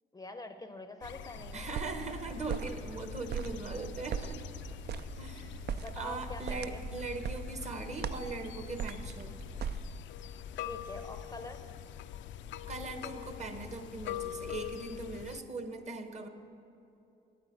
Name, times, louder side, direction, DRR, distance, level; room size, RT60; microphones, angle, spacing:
voice 1, 0.1-1.7 5.3-5.5 5.8-6.8 10.6-11.7, left 2 dB, 20° left, 8 dB, 0.6 m, -45 dB
sound 1, 1.0-15.4, left 10 dB, 70° left, 0.4 m, -44 dB
sound 2, 1.4-10.0, right 7 dB, 55° right, 0.4 m, -41 dB
voice 2, 1.5-4.4 4.9-5.6 5.9-9.3 12.7-16.3, right 3 dB, 35° right, 7 dB, 1.0 m, -40 dB
8.9 x 8.5 x 8.0 m, 2.8 s
cardioid pair, 90°, 20 cm